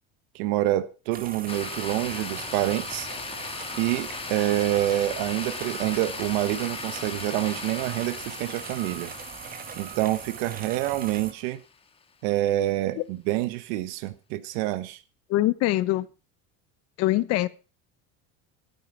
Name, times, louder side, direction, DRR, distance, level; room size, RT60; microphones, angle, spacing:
voice 1, 0.3-3.1 3.8-9.1 9.7-11.6 12.2-15.0, right 15 dB, 80° right, 1.3 m, -27 dB
sound 1, 1.1-11.3, right 7 dB, 30° right, 1.9 m, -40 dB
sound 2, 1.5-11.8, left 5 dB, 20° left, 1.6 m, -38 dB
voice 2, 15.3-16.1 17.0-17.5, left 16 dB, 55° left, 1.1 m, -23 dB
13.5 x 9.7 x 6.0 m
cardioid pair, 150°, 31 cm